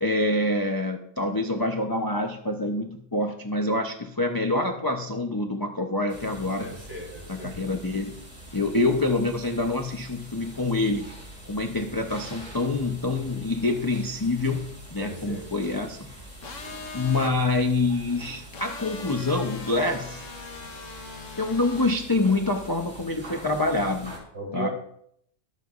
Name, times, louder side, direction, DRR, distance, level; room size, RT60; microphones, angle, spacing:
voice 1, 0.0-6.7 7.3-8.1 8.5-11.1 11.5-16.1 16.9-20.3 21.4-24.1 24.5-24.7, left 2 dB, 25° left, 3 dB, 0.5 m, -26 dB
sound 1, 6.1-24.2, right 1 dB, 30° right, 4.0 m, -45 dB
voice 2, 6.6-7.6 15.0-15.5 24.3-24.7, right 2 dB, 50° right, -2 dB, 5.3 m, -37 dB
sound 2, 16.4-17.3 18.5-21.9, left 3 dB, 60° left, 1.5 m, -40 dB
21.5 x 7.5 x 2.5 m, 0.69 s
omnidirectional pair, 1.5 m